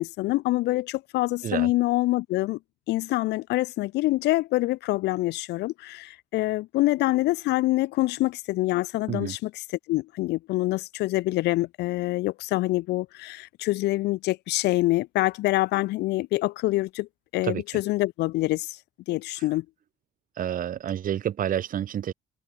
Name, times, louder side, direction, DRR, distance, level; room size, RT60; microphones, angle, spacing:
voice 1, 0.0-2.6 2.9-9.5 9.9-18.8 19.1-19.7, left 18 dB, 85° left, 3.5 m, -26 dB
voice 2, 17.4-17.8 20.4-22.1, right 10 dB, 55° right, 3.7 m, -29 dB
cardioid pair, 110°, 17 cm